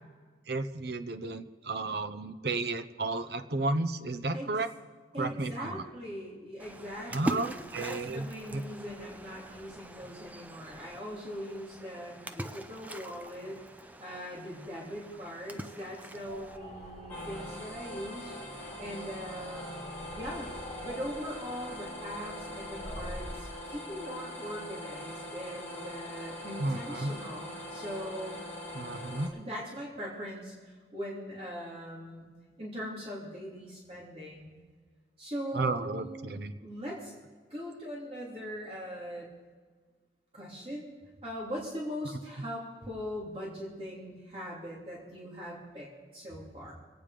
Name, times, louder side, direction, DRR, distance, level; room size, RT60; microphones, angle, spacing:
voice 1, 0.5-4.7 5.2-5.8 7.1-8.3 8.5-8.6 26.6-27.1 28.7-29.3 35.5-36.5, right 2 dB, 65° right, 10 dB, 0.8 m, -33 dB
voice 2, 5.1-13.6 14.0-19.8 20.1-20.5 20.8-28.4 29.3-32.3 32.6-34.5 35.2-36.3 36.6-37.1 37.5-39.3 40.3-40.9 41.2-46.7, equal, 30° right, -5 dB, 3.2 m, -41 dB
Splash splatter, 6.6-16.6, right 1 dB, 10° right, 0.5 m, -42 dB
sound 1, 16.1-23.5, equal, 35° left, 3.6 m, -47 dB
sound 2, 17.1-29.3, left 1 dB, 10° left, 2.4 m, -42 dB
24.5 x 9.2 x 5.1 m, 1.5 s
head